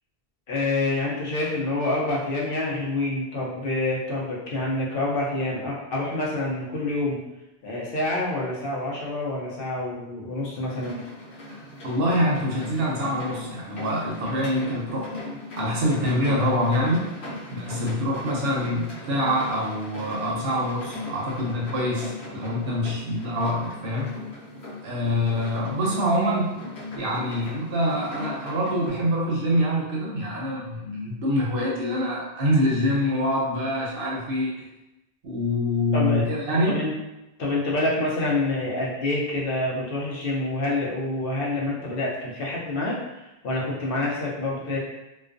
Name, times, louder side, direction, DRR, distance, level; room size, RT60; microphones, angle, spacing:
voice 1, 0.5-7.2 7.6-11.0 35.9-36.9 37.4-44.8, left 2 dB, 65° left, -4 dB, 0.8 m, -27 dB
sound 1, 10.7-28.9, left 2 dB, 85° left, 1.0 m, -38 dB
voice 2, 11.8-15.1 15.6-17.1 17.5-24.2 24.8-26.5 27.0-34.7 35.2-36.8, equal, 65° right, -3 dB, 0.8 m, -25 dB
2.3 x 2.2 x 2.4 m, 0.98 s
omnidirectional pair, 1.1 m